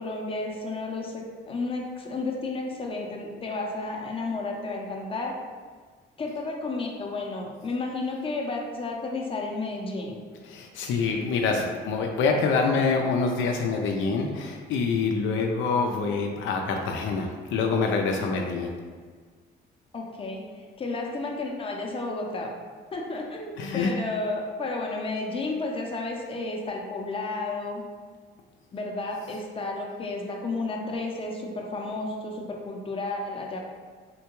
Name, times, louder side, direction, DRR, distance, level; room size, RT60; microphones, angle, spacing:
voice 1, 0.0-5.3 6.2-10.2 19.9-22.5 22.9-27.8 28.7-33.6, left 3 dB, 30° left, 0 dB, 0.6 m, -32 dB
voice 2, 10.4-18.7 23.6-23.9 29.3-29.4, left 4 dB, 80° left, 2 dB, 0.4 m, -26 dB
3.7 x 2.2 x 2.9 m, 1.5 s
cardioid pair, 90°, 20 cm